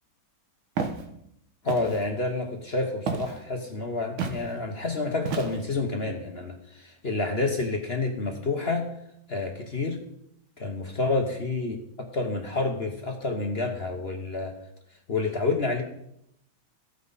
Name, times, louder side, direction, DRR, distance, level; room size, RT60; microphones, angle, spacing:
Walk footsteps, 0.8-1.0 1.7-2.0 3.1-3.4 4.2-4.4 5.2-5.8, right 5 dB, 75° right, 2.0 m, -31 dB
voice 1, 1.6-8.9 9.3-10.0 10.6-11.8 12.1-14.5 15.1-15.8, left 3 dB, 40° left, 3 dB, 1.0 m, -29 dB
14.5 x 9.2 x 4.1 m, 0.76 s
omnidirectional pair, 2.3 m